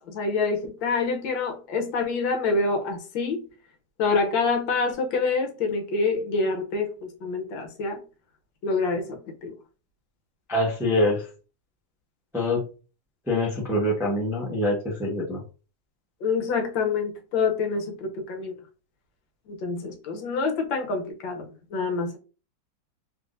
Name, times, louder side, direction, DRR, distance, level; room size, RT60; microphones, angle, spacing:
voice 1, 0.1-3.4 4.0-6.9 7.2-8.0 8.6-9.5 16.2-18.5 19.5-22.2, left 4 dB, 75° left, 3 dB, 1.5 m, -26 dB
voice 2, 10.5-11.2 12.3-12.6 13.3-15.4, left 1 dB, 5° right, -3 dB, 0.5 m, -24 dB
3.4 x 3.2 x 2.5 m, 0.35 s
omnidirectional pair, 2.1 m